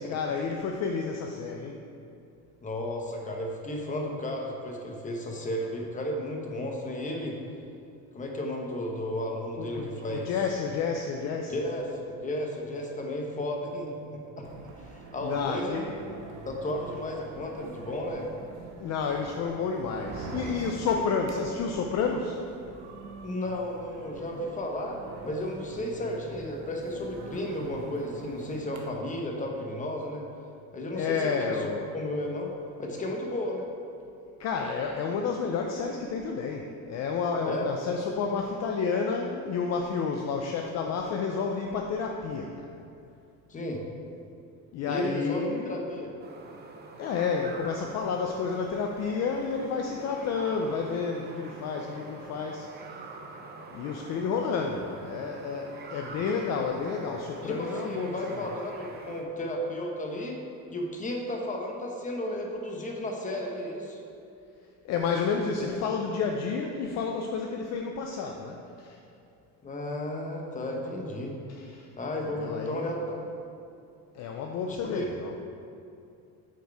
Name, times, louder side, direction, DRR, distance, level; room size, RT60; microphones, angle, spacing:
voice 1, 0.0-1.8 9.6-11.5 15.2-15.9 18.8-22.4 30.9-31.9 34.4-42.6 44.7-46.0 47.0-52.7 53.7-58.5 64.8-69.0 71.5-71.9 72.2-72.9 74.1-75.4, left 5 dB, 45° left, 2 dB, 0.5 m, -30 dB
voice 2, 2.6-7.4 8.1-10.3 11.5-14.4 14.8-15.9 16.4-18.3 23.2-30.2 30.7-31.6 31.9-32.5 32.8-33.7 37.4-37.6 43.5-43.8 44.8-46.1 57.4-60.4 60.7-64.0 65.6-65.7 69.6-71.4 72.0-73.3 74.7-75.1, left 1 dB, 20° left, 1 dB, 1.0 m, -33 dB
sound 1, 14.4-28.8, right 3 dB, 85° right, 1.1 m, -44 dB
sound 2, 46.2-59.2, right 3 dB, 25° right, 0.6 m, -45 dB
8.3 x 4.5 x 4.7 m, 2.6 s
cardioid pair, 140°, 37 cm